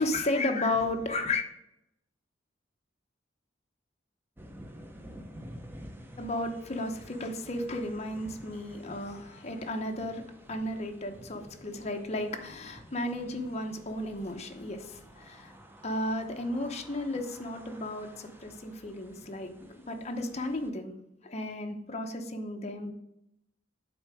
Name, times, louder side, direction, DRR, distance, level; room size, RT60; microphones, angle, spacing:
voice 1, 0.0-1.4 6.2-10.2 10.5-15.5 15.8-20.9 21.2-22.9, left 1 dB, 35° left, 4 dB, 0.8 m, -33 dB
sound 1, 4.4-20.7, equal, 10° right, 0.7 m, -51 dB
8.7 x 3.8 x 4.8 m, 0.83 s
head